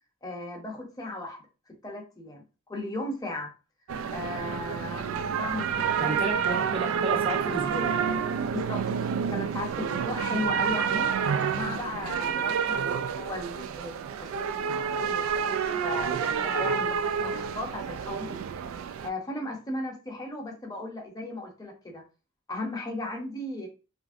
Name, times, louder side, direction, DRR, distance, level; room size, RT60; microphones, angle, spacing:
voice 1, 0.2-1.4 1.8-2.4 2.7-3.5 4.1-6.3 8.5-11.1 11.5-18.4 19.0-22.0 22.5-23.7, left 2 dB, 20° left, 0.8 m, -36 dB
sound 1, 3.9-19.1, right 7 dB, 80° right, 0.3 m, -29 dB
voice 2, 6.0-8.1, right 2 dB, 25° right, 0.6 m, -32 dB
3.0 x 2.5 x 2.5 m
head